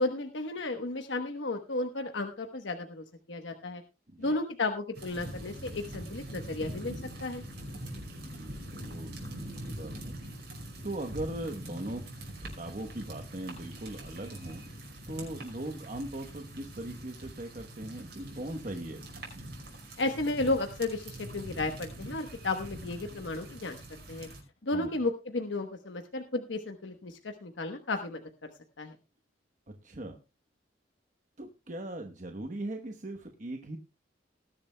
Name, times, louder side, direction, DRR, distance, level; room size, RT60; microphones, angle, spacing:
voice 1, 0.0-3.8 4.2-7.4 20.0-23.8 24.1-24.3 24.6-28.5 28.8-28.9, left 2 dB, 85° left, 5 dB, 1.1 m, -33 dB
sound 1, 4.9-24.4, right 1 dB, 65° right, 5.3 m, -43 dB
voice 2, 8.3-10.2 10.8-12.0 12.4-14.7 15.1-19.0 24.7-25.0 29.7-30.2 31.4-33.8, right 1 dB, 45° right, 4 dB, 1.0 m, -39 dB
19.5 x 11.0 x 2.2 m, 0.27 s
head